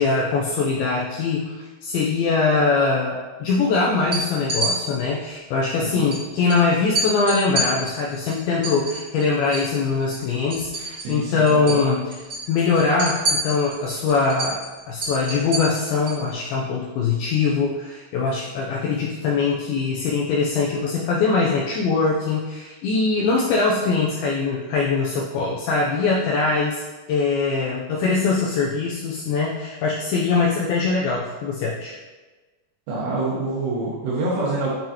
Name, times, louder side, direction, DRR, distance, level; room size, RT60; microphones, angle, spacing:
voice 1, 0.0-12.1 12.5-14.6 14.9-26.8 27.1-31.9, left 4 dB, 90° left, -3 dB, 2.1 m, -22 dB
sound 1, 4.0-4.7 6.1-6.2 6.5-6.6 6.9-9.7 10.0-11.2 11.5-11.8 12.1-16.2, right 2 dB, 50° right, 1.3 m, -28 dB
voice 2, 11.0-11.8 32.9-34.7, right 2 dB, 80° right, -8 dB, 3.1 m, -26 dB
8.7 x 3.9 x 2.8 m, 1.2 s
omnidirectional pair, 5.0 m